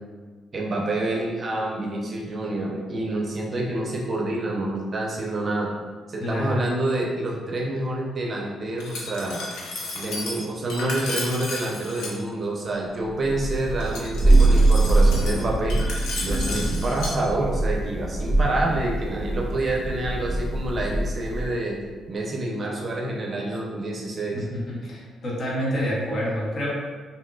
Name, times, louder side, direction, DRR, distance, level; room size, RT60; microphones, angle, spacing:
voice 1, 0.5-5.7 6.1-9.4 9.9-15.8 16.2-21.8 22.1-24.4, right 2 dB, 40° right, -1 dB, 0.6 m, -27 dB
voice 2, 6.2-6.6 24.3-26.7, equal, 55° left, -5 dB, 1.0 m, -28 dB
Glass, 8.8-12.1 13.8-17.1, left 2 dB, 85° left, 0.6 m, -33 dB
Thunder, 13.2-21.6, right 2 dB, 5° right, 0.8 m, -22 dB
3.6 x 2.7 x 2.3 m, 1.5 s
cardioid pair, 90°, 0 cm